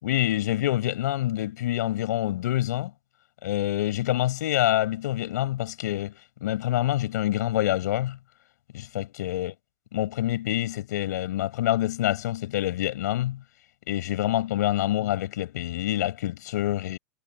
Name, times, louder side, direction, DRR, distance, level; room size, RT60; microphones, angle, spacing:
voice 1, 0.0-2.9 3.4-8.2 8.7-9.5 9.9-13.4 13.9-17.0, left 14 dB, 80° left, 6.9 m, -26 dB
supercardioid pair, 155°, 9 cm